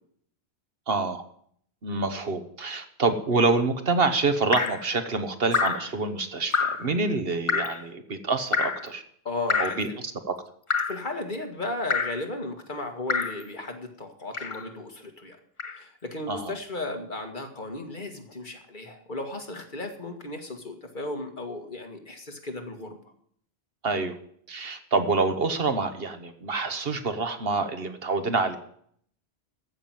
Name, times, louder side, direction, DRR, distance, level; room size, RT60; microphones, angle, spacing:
voice 1, 0.9-1.2 1.8-9.0 9.6-10.3 16.3-16.5 23.8-24.2 24.5-28.6, right 3 dB, 65° right, 9 dB, 1.4 m, -27 dB
Drip, 4.5-4.9 5.5-5.9 6.5-6.9 7.5-7.8 8.5-8.9 9.5-9.9 10.7-11.0 11.9-12.2 13.1-13.4 14.3-14.7 15.6-15.8, left 5 dB, 35° left, 0.7 m, -27 dB
voice 2, 9.3-10.0 10.9-15.4 15.7-23.0, left 2 dB, 50° left, 4 dB, 2.0 m, -35 dB
14.5 x 6.1 x 9.1 m, 0.63 s
omnidirectional pair, 1.1 m